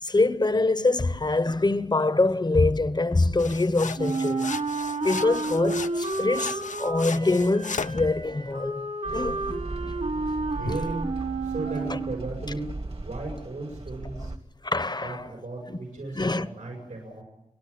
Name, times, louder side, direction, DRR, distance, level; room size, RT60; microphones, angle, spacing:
voice 1, 0.0-4.5 5.0-8.9 9.1-10.0 10.6-10.8 11.9-12.0 14.2-14.3 14.6-15.2 15.7-15.8 16.1-16.5, left 2 dB, 35° left, 1.0 m, -24 dB
sound 1, 3.4-8.0, left 5 dB, 75° left, 0.7 m, -36 dB
Wind instrument woodwind instrument, 4.0-12.3, right 3 dB, 65° right, 4.2 m, -31 dB
sound 2, 9.0-14.4, right 2 dB, 50° right, 1.8 m, -37 dB
voice 2, 10.5-11.1 11.4-12.7 13.0-14.3 15.0-17.2, right 2 dB, 85° right, 7.5 m, -35 dB
30.0 x 12.0 x 8.7 m
wide cardioid pair, 50°, 13 cm